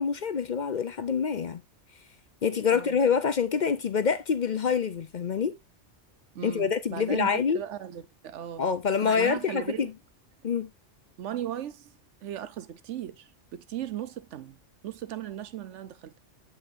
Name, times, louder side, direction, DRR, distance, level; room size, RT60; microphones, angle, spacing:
voice 1, 0.0-1.6 2.4-5.6 6.4-7.6 8.6-9.9 10.4-10.7, left 6 dB, 50° left, 0.6 m, -26 dB
voice 2, 6.3-8.6 9.0-9.9 11.2-11.9 12.2-14.6 14.8-16.2, right 11 dB, 90° right, 1.1 m, -37 dB
8.0 x 7.9 x 2.6 m
omnidirectional pair, 1.2 m